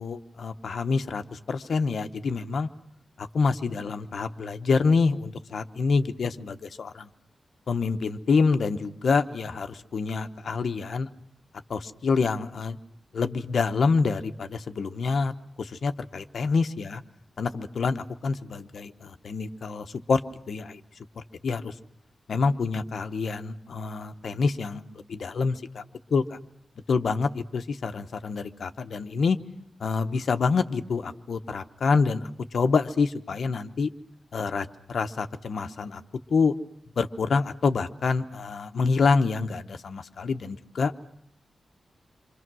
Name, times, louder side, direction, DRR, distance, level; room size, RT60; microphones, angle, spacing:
voice 1, 0.0-2.7 3.2-7.1 7.7-11.1 11.7-12.8 13.1-15.3 15.6-17.0 17.4-20.2 20.5-20.8 21.2-21.7 22.3-24.8 25.1-25.8 26.1-26.4 26.9-29.4 29.8-33.9 34.3-36.0 36.3-36.5 37.0-40.9, left 4 dB, 60° left, 8 dB, 1.0 m, -27 dB
28.0 x 25.0 x 6.2 m, 0.70 s
wide cardioid pair, 180°, 0 cm